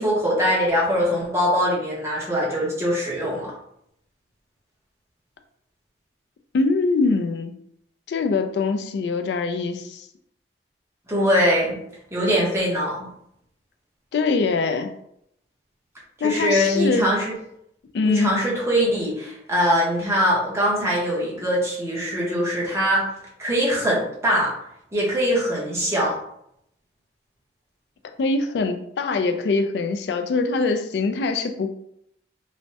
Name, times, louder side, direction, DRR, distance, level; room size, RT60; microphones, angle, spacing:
voice 1, 0.0-3.5 11.1-11.8 12.1-13.1 16.2-17.3 18.0-23.0 23.4-24.5 24.9-26.1, equal, 15° right, -5 dB, 0.8 m, -22 dB
voice 2, 6.5-7.6 8.1-10.1 14.1-14.9 16.2-17.1 17.9-18.4 28.2-31.7, left 3 dB, 65° left, 7 dB, 0.3 m, -23 dB
3.1 x 2.1 x 2.7 m, 0.75 s
head